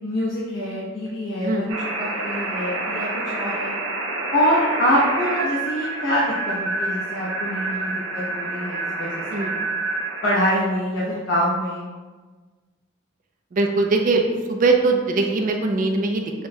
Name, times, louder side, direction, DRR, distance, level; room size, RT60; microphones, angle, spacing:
voice 1, 0.0-1.6 2.0-3.7 4.3-9.5 10.2-11.9, equal, 65° left, -7 dB, 0.8 m, -25 dB
sound 1, 1.7-10.5, right 2 dB, 90° right, 0.7 m, -28 dB
voice 2, 13.5-14.2 14.5-16.3, right 3 dB, 45° right, 3 dB, 0.4 m, -21 dB
6.1 x 2.2 x 2.7 m, 1.4 s
head